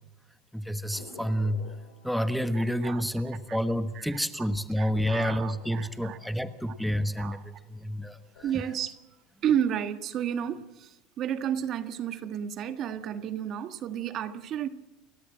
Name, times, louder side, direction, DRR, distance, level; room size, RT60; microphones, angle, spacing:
voice 1, 0.5-1.6 2.0-7.4 7.7-8.2, equal, ahead, 1.3 m, -29 dB
sound 1, 0.9-4.0 4.3-4.4 4.9-7.8 8.2-8.8, left 6 dB, 75° left, 4.1 m, -52 dB
voice 2, 2.5-3.6 3.9-4.2 4.8-6.2 6.7-6.8 7.2-7.4 8.4-14.7, right 9 dB, 45° right, 1.5 m, -32 dB
30.0 x 13.0 x 7.7 m
hypercardioid pair, 95°, 0 cm